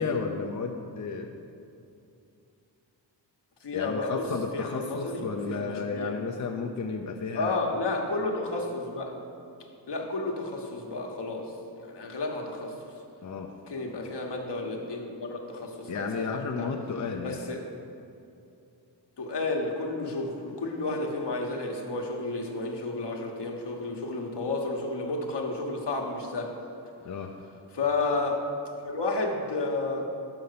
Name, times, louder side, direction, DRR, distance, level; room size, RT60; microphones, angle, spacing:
voice 1, 0.0-1.3 3.7-7.5 13.2-13.5 15.9-17.4 27.0-27.3, left 4 dB, 40° left, 3 dB, 0.6 m, -32 dB
voice 2, 3.6-4.3 4.5-6.2 7.3-9.1 9.9-11.5 11.8-12.7 13.7-16.7 17.2-17.6 19.2-26.5 27.7-28.4 28.8-30.1, left 2 dB, 65° left, 1 dB, 1.2 m, -31 dB
5.7 x 5.5 x 6.7 m, 2.6 s
cardioid pair, 55°, 44 cm